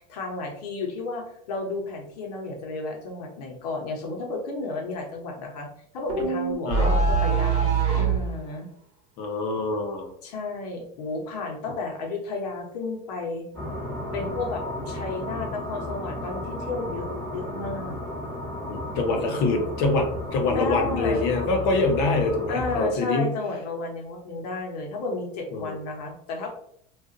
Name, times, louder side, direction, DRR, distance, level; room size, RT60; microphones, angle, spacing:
voice 1, 0.0-5.7 5.9-8.7 10.2-13.5 14.1-18.0 20.5-21.3 22.5-26.5, left 3 dB, 90° left, 1 dB, 0.9 m, -32 dB
sound 1, 6.1-8.2, right 5 dB, 30° right, 1.2 m, -22 dB
voice 2, 9.2-10.1 18.7-23.3 25.5-25.8, left 3 dB, 55° left, 3 dB, 0.8 m, -25 dB
sound 2, 13.5-22.8, left 1 dB, 10° left, 1.2 m, -33 dB
2.5 x 2.4 x 3.8 m, 0.67 s
supercardioid pair, 135°, 20 cm